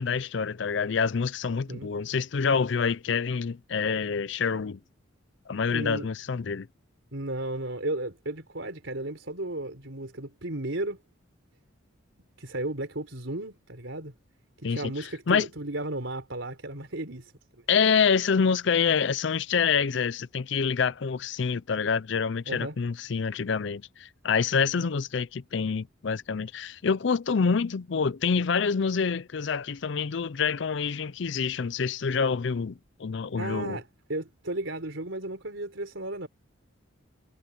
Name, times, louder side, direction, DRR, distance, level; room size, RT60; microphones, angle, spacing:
voice 1, 0.0-4.8 5.5-6.7 14.6-15.5 17.7-33.8, left 6 dB, 60° left, 0.5 m, -27 dB
voice 2, 5.7-6.1 7.1-11.0 12.4-14.1 14.6-17.3 22.5-22.8 33.4-36.3, right 2 dB, 70° right, 4.2 m, -34 dB
head